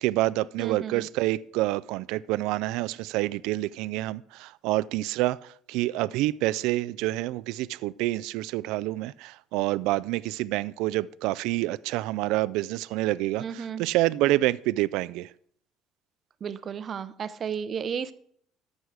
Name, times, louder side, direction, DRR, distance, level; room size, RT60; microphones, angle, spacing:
voice 1, 0.0-15.3, right 17 dB, 80° right, 0.3 m, -27 dB
voice 2, 0.6-1.1 13.4-13.8 16.4-18.1, right 7 dB, 40° right, 0.6 m, -33 dB
13.5 x 6.3 x 4.8 m
cardioid pair, 115°, 0 cm